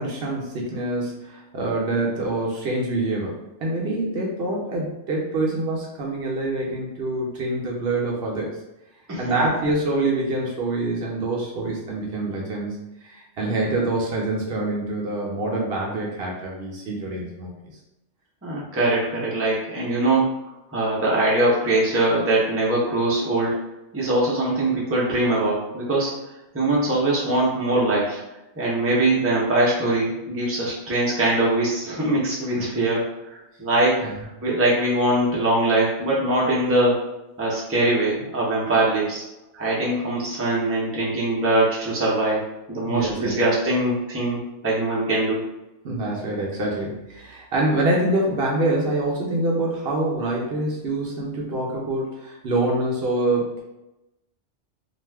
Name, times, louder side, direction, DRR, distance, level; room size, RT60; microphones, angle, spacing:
voice 1, 0.0-8.6 9.2-17.5 32.6-32.9 34.0-34.1 42.8-43.4 45.8-53.6, right 2 dB, 60° right, -2 dB, 0.8 m, -25 dB
voice 2, 9.1-9.5 18.4-20.3 20.7-23.5 23.9-26.1 26.5-28.2 28.6-33.0 33.3-34.1 34.4-37.0 37.4-39.2 39.5-44.4 44.6-45.4, right 2 dB, 15° right, -5 dB, 0.5 m, -22 dB
2.6 x 2.3 x 3.3 m, 0.94 s
omnidirectional pair, 1.2 m